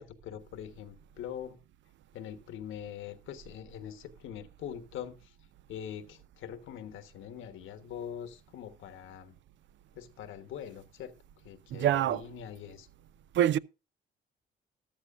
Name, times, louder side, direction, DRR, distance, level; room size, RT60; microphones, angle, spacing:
voice 1, 0.0-1.6 2.1-5.3 5.7-9.3 9.9-11.1 11.4-12.9, left 9 dB, 85° left, 1.3 m, -43 dB
voice 2, 11.7-12.2 13.3-13.6, right 11 dB, 70° right, 0.5 m, -25 dB
14.0 x 12.0 x 2.5 m
cardioid pair, 90°, 20 cm